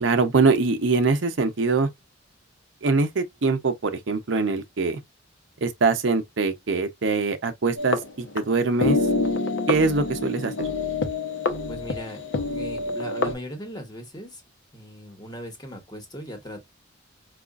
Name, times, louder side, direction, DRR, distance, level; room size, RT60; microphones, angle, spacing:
voice 1, 0.0-1.9 2.8-5.0 5.6-9.0 9.7-10.7, right 4 dB, 75° right, 0.7 m, -23 dB
sound 1, 7.8-8.5 8.8-13.3, left 3 dB, 75° left, 0.7 m, -26 dB
voice 2, 11.7-14.4 14.7-16.7, equal, 20° left, 1.1 m, -38 dB
4.9 x 2.4 x 2.4 m
head